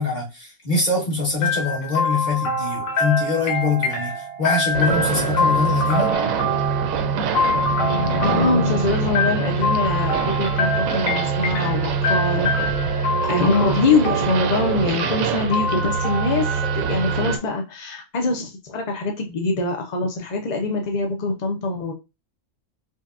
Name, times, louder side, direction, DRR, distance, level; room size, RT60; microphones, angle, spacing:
voice 1, 0.0-6.1, left 4 dB, 35° left, 1.5 m, -24 dB
sound 1, 1.4-17.2, left 2 dB, 75° left, 1.2 m, -25 dB
sound 2, 4.7-17.4, right 6 dB, 70° right, 0.9 m, -24 dB
sound 3, 7.5-10.5, left 5 dB, 90° left, 1.2 m, -28 dB
voice 2, 8.2-12.9 13.3-16.5 16.7-21.9, left 3 dB, 60° left, 0.4 m, -24 dB
5.2 x 2.2 x 2.4 m
omnidirectional pair, 1.5 m